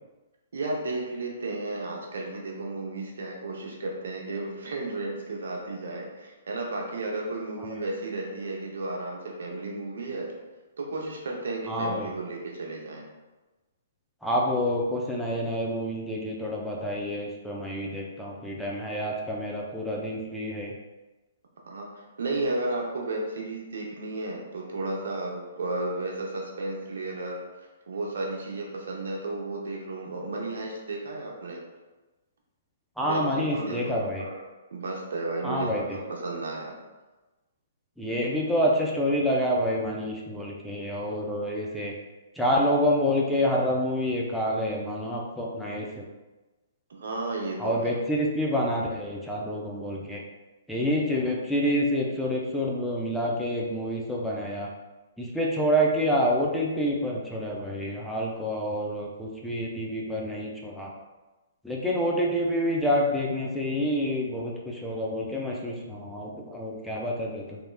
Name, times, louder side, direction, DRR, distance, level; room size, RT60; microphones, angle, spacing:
voice 1, 0.5-10.3 10.8-13.1 21.7-31.6 33.0-33.2 33.5-36.7 46.9-48.0, right 2 dB, 70° right, 0 dB, 0.7 m, -33 dB
voice 2, 11.7-12.1 14.2-20.7 33.0-34.2 35.4-35.8 38.0-41.9 42.4-46.0 47.6-50.2 50.7-54.7 55.2-60.9 61.6-67.6, equal, ahead, -4 dB, 0.5 m, -27 dB
3.1 x 2.9 x 2.2 m, 1.1 s
hypercardioid pair, 125°, 0 cm